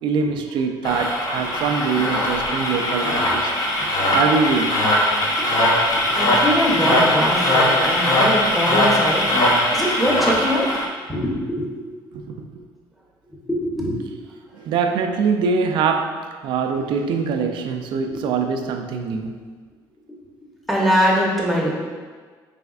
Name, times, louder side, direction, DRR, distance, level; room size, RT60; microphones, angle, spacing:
voice 1, 0.0-3.5 3.9-4.9 12.1-12.6 14.5-19.4, right 5 dB, 70° right, 5 dB, 0.4 m, -23 dB
End scratch speed variations, 0.8-10.9, left 1 dB, 50° left, 0.8 m, -20 dB
voice 2, 3.8-4.1 5.4-10.7 11.1-11.7 13.5-14.1 18.1-18.2 20.7-21.7, equal, ahead, -4 dB, 0.8 m, -23 dB
4.9 x 3.4 x 2.4 m, 1.5 s
cardioid pair, 130°, 8 cm